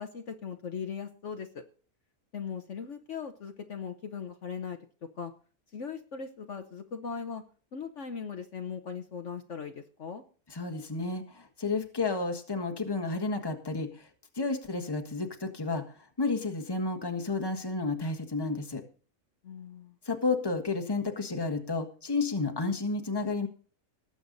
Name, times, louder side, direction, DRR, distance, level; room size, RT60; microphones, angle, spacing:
voice 1, 0.0-1.6 2.3-4.8 5.1-5.3 5.7-7.4 7.7-10.2 19.4-20.0, left 6 dB, 55° left, 6 dB, 1.2 m, -39 dB
voice 2, 10.5-14.1 14.3-18.8 20.0-23.5, left 3 dB, 15° left, 6 dB, 1.4 m, -31 dB
19.0 x 8.0 x 4.0 m, 0.40 s
omnidirectional pair, 1.6 m